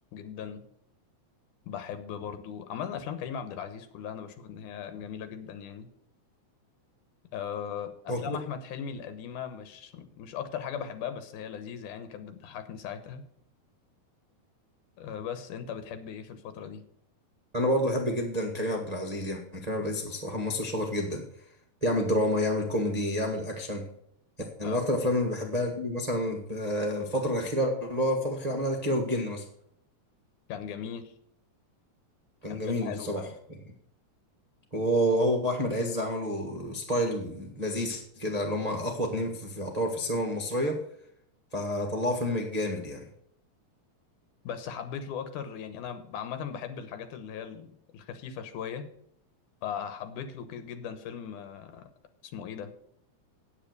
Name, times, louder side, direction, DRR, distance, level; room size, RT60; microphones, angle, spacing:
voice 1, 0.1-0.6 1.7-5.9 7.3-13.2 15.0-16.8 24.6-24.8 30.5-31.1 32.5-33.3 44.4-48.8 49.6-51.9 52.3-52.7, left 8 dB, 85° left, 9 dB, 2.5 m, -38 dB
voice 2, 8.1-8.4 17.5-21.5 21.8-23.9 24.6-29.5 32.4-33.6 34.7-40.8 41.5-43.1, equal, 40° right, 1 dB, 0.5 m, -29 dB
9.0 x 8.6 x 6.6 m, 0.68 s
omnidirectional pair, 3.5 m